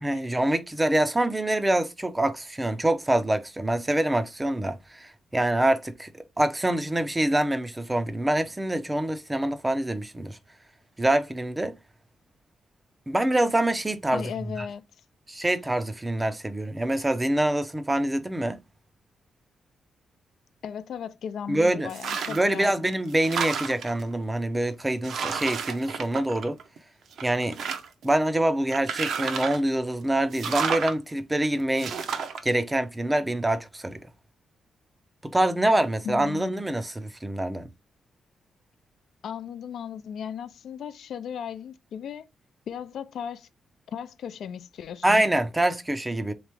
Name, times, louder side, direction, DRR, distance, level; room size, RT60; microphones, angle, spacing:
voice 1, 0.0-10.4 11.0-11.8 13.1-14.2 14.6-14.7 15.3-18.6 21.5-21.9 22.3-26.6 27.2-27.6 28.0-32.0 32.4-34.0 35.2-37.7 45.0-46.3, right 1 dB, 10° right, 0.5 m, -25 dB
voice 2, 14.1-14.8 20.6-22.9 36.0-36.6 39.2-42.3 42.7-43.5 43.9-45.2, left 8 dB, 65° left, 0.4 m, -36 dB
sound 1, 21.9-22.5 22.9-24.0 24.6-24.7 25.0-26.8 27.1-28.0 28.7-29.7 30.3-30.9 31.8-32.4, right 6 dB, 65° right, 0.6 m, -31 dB
3.6 x 3.1 x 3.3 m
wide cardioid pair, 155°, 0 cm